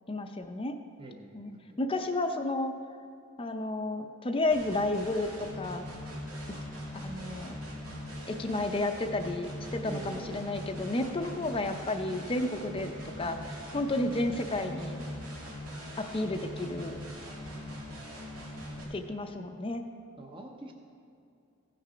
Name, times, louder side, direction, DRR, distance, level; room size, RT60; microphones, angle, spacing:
voice 1, 0.1-0.8 1.3-1.5 1.8-2.7 3.4-5.8 6.9-7.6 8.3-15.0 16.0-17.0 18.9-19.8, left 2 dB, 25° left, 6 dB, 0.5 m, -32 dB
voice 2, 1.0-1.8 9.8-10.4 11.3-11.5 20.2-20.7, right 2 dB, 25° right, 2 dB, 0.7 m, -44 dB
sound 1, 4.5-18.8, equal, 90° right, 2.5 m, -41 dB
15.5 x 6.5 x 5.0 m, 2.6 s
head